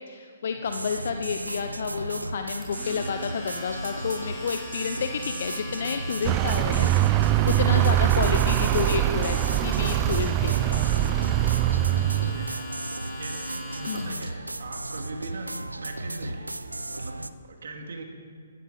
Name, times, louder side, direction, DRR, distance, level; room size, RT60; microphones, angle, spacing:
voice 1, 0.0-10.9 13.9-14.2, left 6 dB, 55° left, 6 dB, 0.9 m, -30 dB
sound 1, 0.7-17.3, right 2 dB, 85° right, 0.7 m, -35 dB
Domestic sounds home sounds, 2.6-14.2, left 1 dB, 10° left, 4.9 m, -40 dB
Vehicle, 6.2-12.6, right 15 dB, 25° right, 0.4 m, -23 dB
voice 2, 11.7-18.0, right 3 dB, 60° right, 3 dB, 2.6 m, -42 dB
16.5 x 15.0 x 5.3 m, 2.2 s
figure-of-eight pair, 130°, 0 cm